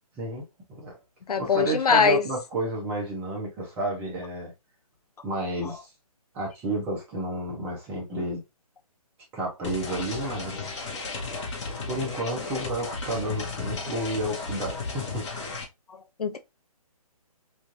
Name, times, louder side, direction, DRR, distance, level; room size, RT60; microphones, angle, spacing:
voice 1, 0.2-1.0 1.4-4.5 5.2-5.9 6.3-8.4 9.3-10.8 11.9-15.3, right 1 dB, 10° right, 0.6 m, -31 dB
voice 2, 1.3-2.2 16.2-16.4, left 5 dB, 90° left, 0.6 m, -21 dB
sound 1, 9.6-15.6, left 3 dB, 50° left, 1.0 m, -34 dB
3.1 x 2.4 x 2.6 m
hypercardioid pair, 160°, 19 cm